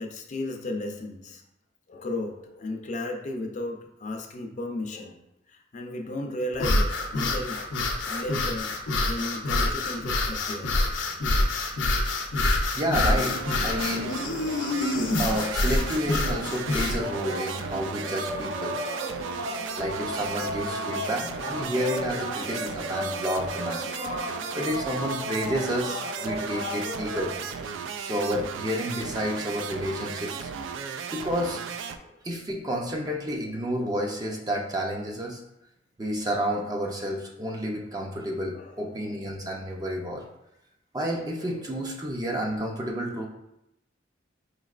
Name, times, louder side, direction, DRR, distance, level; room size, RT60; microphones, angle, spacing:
voice 1, 0.0-1.4 1.9-5.2 5.5-7.6 8.0-8.7 9.1-10.7 14.4-14.8 15.4-15.5 16.3-16.4 18.8-19.1 19.6-19.9 23.1-23.2 24.2-24.5 26.9-27.0 32.0-32.2 38.5-39.0 39.4-39.9 41.4-41.6, left 1 dB, 40° left, 3 dB, 0.5 m, -35 dB
sound 1, 6.5-17.0, left 2 dB, 90° left, 0.6 m, -26 dB
voice 2, 12.4-14.3 15.2-18.8 19.8-23.9 24.2-27.5 28.0-30.5 31.1-31.6 32.2-35.4 36.0-40.3 40.9-43.3, equal, 20° right, 0 dB, 0.5 m, -30 dB
sound 2, 12.9-32.0, right 6 dB, 90° right, 0.3 m, -36 dB
sound 3, 17.0-27.4, left 1 dB, 60° right, 0.8 m, -35 dB
4.9 x 3.1 x 2.4 m, 0.84 s
head